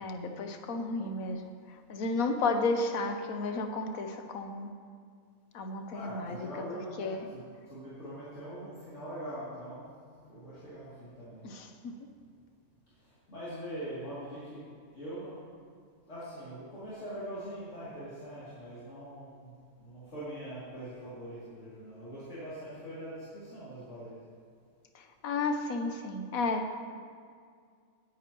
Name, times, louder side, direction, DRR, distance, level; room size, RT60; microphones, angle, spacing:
voice 1, 0.0-1.4 1.9-4.7 5.5-6.5 7.0-7.3 11.4-11.9 25.2-26.8, left 3 dB, 85° left, 6 dB, 1.3 m, -32 dB
voice 2, 5.9-9.8 10.2-11.5 13.0-14.6 14.9-15.4 16.1-19.5 19.8-24.2, right 1 dB, 60° left, -12 dB, 3.2 m, -42 dB
18.0 x 9.3 x 3.0 m, 2.1 s
omnidirectional pair, 1.4 m